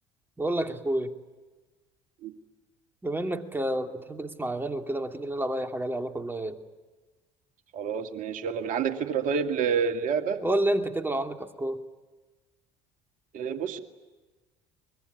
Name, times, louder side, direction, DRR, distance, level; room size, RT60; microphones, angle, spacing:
voice 1, 0.4-1.1 3.0-6.6 10.4-11.8, right 1 dB, 10° right, 6 dB, 2.6 m, -29 dB
voice 2, 7.7-10.4 13.3-13.8, right 6 dB, 55° right, 6 dB, 2.3 m, -28 dB
24.0 x 21.5 x 9.8 m, 1.2 s
hypercardioid pair, 60°, 17 cm